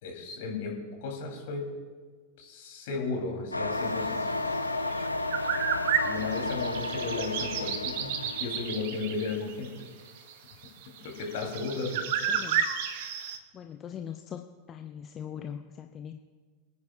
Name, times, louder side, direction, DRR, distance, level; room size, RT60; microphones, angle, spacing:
voice 1, 0.0-0.7 1.0-1.6 2.4-4.2 6.0-9.7 10.0-10.1 11.0-12.1, left 4 dB, 55° left, 0 dB, 3.3 m, -34 dB
sound 1, 3.5-8.8, left 2 dB, 85° left, 0.6 m, -32 dB
sound 2, 4.9-13.4, right 8 dB, 50° right, 1.0 m, -32 dB
voice 2, 12.3-12.6 13.5-14.4 14.7-16.2, left 8 dB, 25° left, 6 dB, 0.6 m, -41 dB
25.0 x 9.6 x 2.5 m, 1.5 s
figure-of-eight pair, 90°, 0 cm